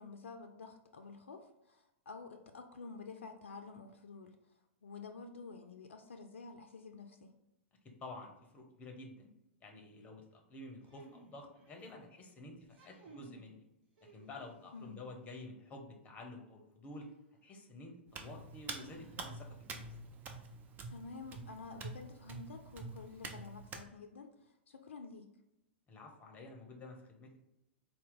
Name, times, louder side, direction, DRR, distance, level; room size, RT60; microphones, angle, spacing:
voice 1, 0.0-7.3 14.7-15.0 20.9-25.3, left 4 dB, 75° left, 5 dB, 0.4 m, -50 dB
voice 2, 8.0-9.3 9.6-13.6 14.1-17.1 17.4-19.9 25.9-27.3, left 2 dB, 25° left, 3 dB, 0.8 m, -50 dB
sound 1, 10.8-12.0 12.6-13.5 14.0-14.9 16.8-16.9 18.7-19.6, right 4 dB, 50° right, 1.1 m, -58 dB
Hands, 18.1-23.9, right 3 dB, 25° right, 0.5 m, -47 dB
4.2 x 2.1 x 3.7 m, 0.87 s
hypercardioid pair, 105°, 7 cm